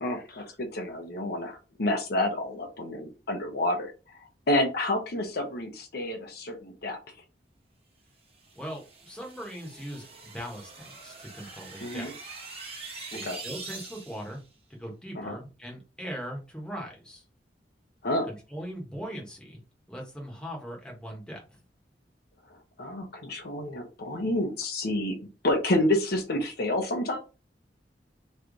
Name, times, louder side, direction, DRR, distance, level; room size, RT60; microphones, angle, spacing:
voice 1, 0.0-3.9 4.5-7.0 11.8-12.1 13.1-13.4 15.1-15.4 18.0-18.3 22.8-25.2 25.4-27.2, left 1 dB, 60° left, 3 dB, 0.9 m, -29 dB
sound 1, 8.4-14.4, right 4 dB, 35° right, 1.1 m, -44 dB
voice 2, 8.5-12.1 13.1-14.4 14.7-17.2 18.2-19.6 19.9-21.6, equal, 5° left, -1 dB, 1.3 m, -40 dB
3.2 x 3.1 x 3.8 m, 0.32 s
head